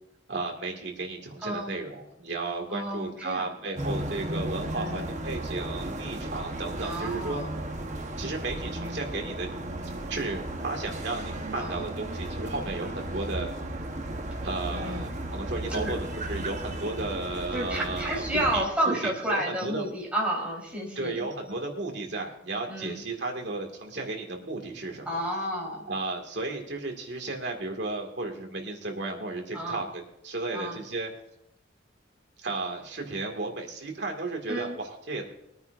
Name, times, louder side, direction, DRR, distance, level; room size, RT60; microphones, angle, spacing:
voice 1, 0.3-7.4 8.2-9.5 10.1-13.5 14.4-19.8 21.0-25.2 25.9-31.1 32.4-35.2, right 2 dB, 60° right, 2 dB, 2.2 m, -34 dB
voice 2, 1.4-1.8 2.7-3.5 4.7-5.1 6.8-7.6 11.5-11.8 14.7-15.1 15.7-15.9 17.5-21.3 22.7-23.0 25.1-25.9 29.5-29.8 30.5-30.8 34.5-34.8, right 1 dB, 5° right, -4 dB, 4.1 m, -31 dB
sound 1, 3.8-18.6, right 1 dB, 40° right, 1.1 m, -35 dB
22.5 x 9.4 x 2.6 m, 0.81 s
head